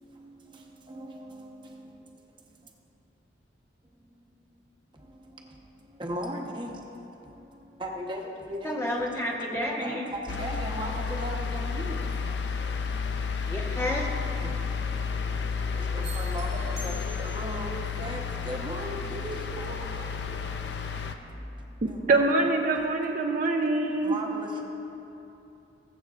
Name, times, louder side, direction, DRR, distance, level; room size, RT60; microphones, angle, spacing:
voice 1, 0.9-1.4 6.0-6.7 7.8-8.2 8.5-8.7 9.8-12.0 14.2-14.6 15.7-20.1 21.9-22.4 24.0-24.6, right 1 dB, 25° right, 0 dB, 0.9 m, -37 dB
voice 2, 8.6-10.0 13.5-14.1, left 1 dB, 15° left, -2 dB, 1.1 m, -30 dB
sound 1, 10.3-21.2, left 5 dB, 65° left, 0.5 m, -31 dB
sound 2, 16.0-17.7, right 2 dB, 80° right, 1.6 m, -45 dB
voice 3, 22.1-24.2, right 2 dB, 45° right, 2 dB, 0.5 m, -24 dB
19.5 x 7.9 x 2.4 m, 2.9 s
head